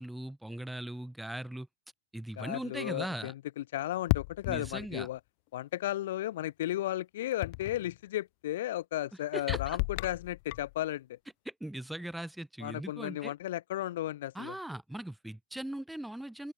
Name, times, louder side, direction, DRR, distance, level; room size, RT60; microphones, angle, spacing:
voice 1, 0.0-1.7 2.1-3.3 4.5-5.1 9.3-9.8 11.5-13.3 14.3-16.5, right 1 dB, 5° right, 0.8 m, -39 dB
voice 2, 2.4-5.2 5.5-11.2 12.6-14.6, left 14 dB, 65° left, 2.4 m, -35 dB
sound 1, 4.1-5.2 7.4-8.0 9.5-10.8, left 32 dB, 50° left, 0.5 m, -34 dB
open air
hypercardioid pair, 135°, 0 cm